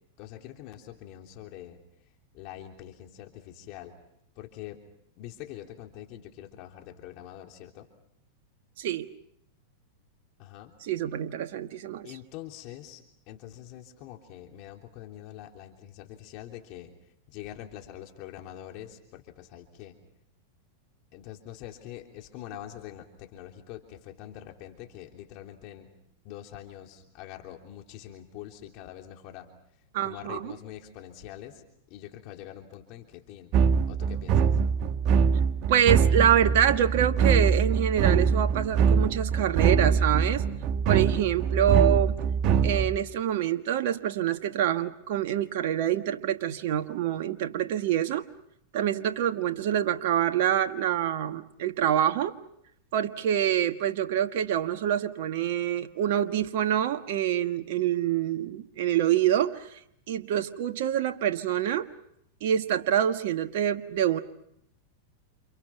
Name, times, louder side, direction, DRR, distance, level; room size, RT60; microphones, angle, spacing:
voice 1, 0.2-1.8 2.3-4.0 4.3-4.8 5.2-7.9 10.4-10.7 12.0-16.9 17.3-20.0 21.1-25.9 26.2-29.5 30.0-33.5 33.9-34.6, left 12 dB, 50° left, 3 dB, 3.4 m, -44 dB
voice 2, 10.8-12.1 29.9-30.5 35.7-40.4 40.8-42.1 42.6-48.2 48.7-52.3 52.9-59.8 60.1-61.9 62.4-64.2, right 10 dB, 60° right, 8 dB, 1.5 m, -26 dB
sound 1, 33.5-43.0, right 6 dB, 45° right, 1.3 m, -23 dB
29.5 x 29.0 x 5.9 m, 0.75 s
hypercardioid pair, 105°, 0 cm